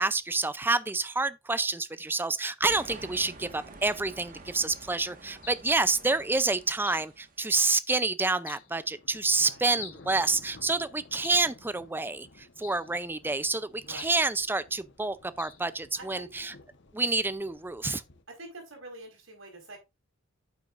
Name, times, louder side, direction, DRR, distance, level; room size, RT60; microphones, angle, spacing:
voice 1, 0.0-16.5 16.9-18.0, right 3 dB, 10° right, 0.5 m, -28 dB
sound 1, 2.6-7.5, right 2 dB, 45° right, 1.6 m, -48 dB
sound 2, 3.8-4.1 5.4-5.7 6.8-7.1 8.4-8.7 9.8-10.1 11.2-11.6 12.6-12.9 14.0-14.3 15.4-15.7, left 9 dB, 80° left, 2.4 m, -46 dB
sound 3, 8.0-18.2, left 2 dB, 60° left, 1.2 m, -55 dB
voice 2, 9.4-9.7 13.8-14.1 15.9-16.3 18.3-19.8, right 2 dB, 80° right, 4.7 m, -46 dB
9.1 x 8.3 x 2.5 m
head